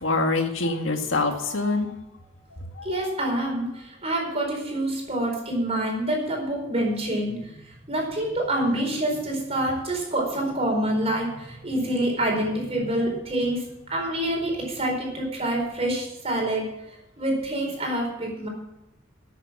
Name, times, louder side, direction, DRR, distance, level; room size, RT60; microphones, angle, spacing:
voice 1, 0.0-1.9, left 3 dB, 75° left, 4 dB, 2.0 m, -24 dB
voice 2, 2.8-7.4 7.9-13.6 13.9-16.6 17.2-18.5, right 1 dB, 35° right, 0 dB, 4.5 m, -26 dB
13.5 x 8.3 x 7.4 m, 0.88 s
head